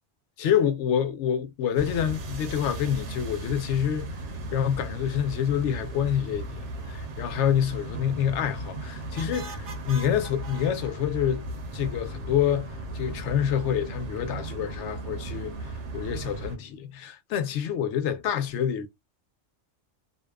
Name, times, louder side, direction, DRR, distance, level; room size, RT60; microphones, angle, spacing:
voice 1, 0.4-4.1 4.5-6.6 6.9-11.4 11.7-15.5 15.9-18.9, left 9 dB, 85° left, 0.9 m, -27 dB
sound 1, 1.7-16.6, right 1 dB, 90° right, 1.0 m, -36 dB
2.6 x 2.2 x 2.3 m
omnidirectional pair, 1.2 m